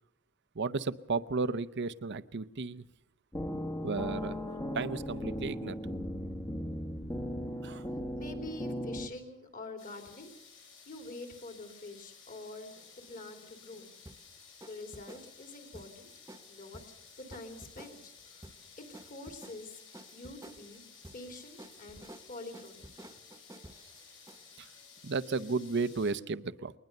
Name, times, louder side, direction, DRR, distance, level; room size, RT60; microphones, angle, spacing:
voice 1, 0.6-2.8 3.8-4.4 4.7-5.8 7.6-7.8 24.6-24.7 25.0-26.7, right 4 dB, 55° right, 16 dB, 0.7 m, -33 dB
sound 1, 3.3-9.1, equal, 20° left, 1.1 m, -37 dB
voice 2, 7.6-10.3 10.9-13.9 14.6-16.1 16.5-16.8 17.2-20.8 21.1-22.0 22.3-22.8, left 2 dB, 40° left, 6 dB, 3.2 m, -46 dB
sound 2, 9.8-26.1, left 6 dB, 65° left, 7.8 m, -55 dB
sound 3, 12.7-24.7, right 1 dB, 15° right, 1.2 m, -53 dB
21.5 x 20.0 x 6.7 m, 0.78 s
head